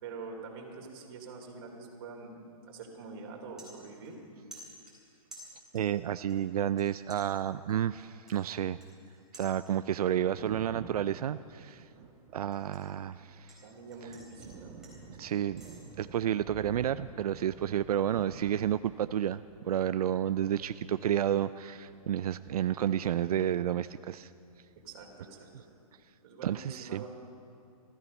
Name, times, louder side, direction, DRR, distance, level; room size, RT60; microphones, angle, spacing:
voice 1, 0.0-4.2 13.6-14.8 24.8-25.7 26.2-27.1, right 4 dB, 40° right, 1 dB, 3.1 m, -45 dB
sound 1, 2.6-2.9 3.2-4.2 4.5-6.0 6.3-6.8 7.1-10.0 10.4-10.7 11.1-13.6 13.9-15.8, right 1 dB, 5° right, 3.9 m, -54 dB
voice 2, 5.7-8.8 9.3-11.9 12.3-13.5 15.2-15.6 16.0-24.3 26.4-27.0, right 10 dB, 90° right, 13 dB, 0.4 m, -31 dB
Thunder, 9.9-24.3 24.6-25.8, right 4 dB, 25° right, 1.2 m, -51 dB
18.5 x 14.5 x 5.4 m, 2.5 s
hypercardioid pair, 160°, 19 cm